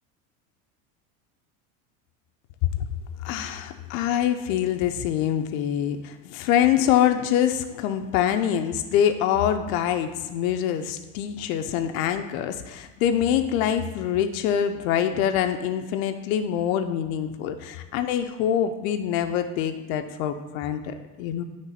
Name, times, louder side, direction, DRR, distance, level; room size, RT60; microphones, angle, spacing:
voice 1, 3.2-21.4, left 10 dB, 75° left, 7 dB, 0.6 m, -25 dB
9.7 x 3.3 x 4.1 m, 1.1 s
supercardioid pair, 125°, 42 cm